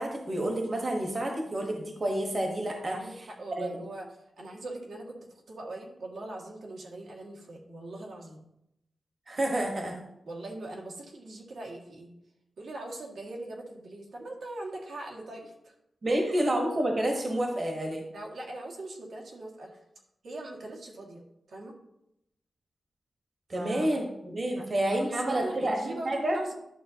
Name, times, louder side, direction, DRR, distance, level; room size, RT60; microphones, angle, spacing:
voice 1, 0.0-3.0 3.6-3.8 9.3-10.0 16.0-18.1 23.5-26.4, right 1 dB, 35° right, 1 dB, 1.2 m, -29 dB
voice 2, 2.9-4.1 4.4-8.4 10.3-12.1 12.6-15.7 16.1-16.4 18.1-19.8 20.2-21.2 21.5-21.8 23.5-23.9 24.6-24.7 25.2-26.5, right 2 dB, 80° right, -2 dB, 1.9 m, -41 dB
11.0 x 6.9 x 2.8 m, 0.82 s
wide cardioid pair, 170°, 0 cm